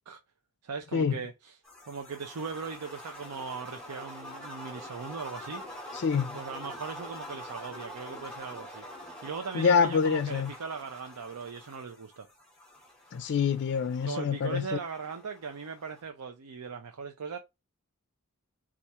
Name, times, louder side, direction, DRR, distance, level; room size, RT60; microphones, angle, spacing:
voice 1, 0.6-1.6 1.8-5.6 6.3-8.8 9.2-12.3 14.0-17.4, right 5 dB, 85° right, 0.6 m, -39 dB
sound 1, 1.6-16.0, left 1 dB, 5° left, 1.7 m, -45 dB
voice 2, 5.9-6.4 9.5-10.5 13.1-14.8, left 6 dB, 55° left, 0.4 m, -26 dB
4.2 x 2.4 x 4.5 m
head